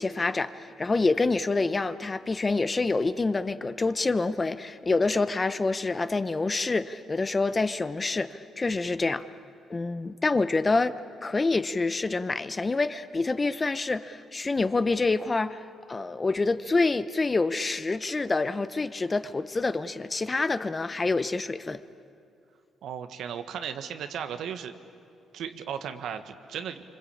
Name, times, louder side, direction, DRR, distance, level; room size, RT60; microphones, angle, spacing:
voice 1, 0.0-9.2 9.7-21.8, left 3 dB, 25° left, 13 dB, 0.9 m, -27 dB
voice 2, 22.8-24.7 25.3-26.8, right 8 dB, 75° right, 8 dB, 1.6 m, -36 dB
26.0 x 25.5 x 8.6 m, 2.5 s
cardioid pair, 90°, 0 cm